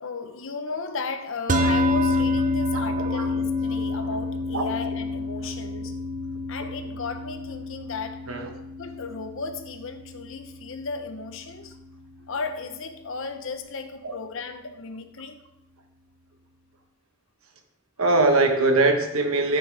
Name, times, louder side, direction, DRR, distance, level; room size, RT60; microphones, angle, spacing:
voice 1, 0.0-6.0 6.5-8.4 8.8-11.7 12.2-15.4, left 4 dB, 65° left, 0.9 m, -35 dB
sound 1, 1.5-11.9, left 2 dB, 40° right, 0.8 m, -28 dB
voice 2, 18.0-19.6, right 2 dB, 85° right, 1.3 m, -21 dB
10.5 x 9.1 x 3.4 m
head